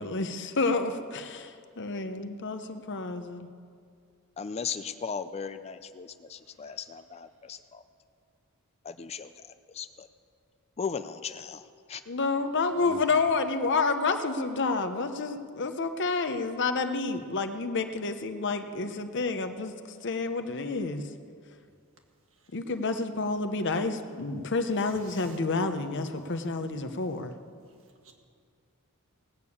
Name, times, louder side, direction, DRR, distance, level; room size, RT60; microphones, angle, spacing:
voice 1, 0.0-3.5 12.1-19.7 20.0-21.0 22.5-27.3, left 3 dB, 55° left, 0.8 m, -29 dB
voice 2, 4.4-7.8 8.8-9.5 9.7-10.1 10.8-12.0, left 6 dB, 30° left, 0.4 m, -37 dB
voice 3, 6.4-6.8 12.8-13.1 22.3-22.5 24.8-25.4 26.5-26.6 26.9-27.0 27.7-28.1, right 2 dB, 60° right, 1.8 m, -52 dB
18.5 x 6.8 x 8.5 m
head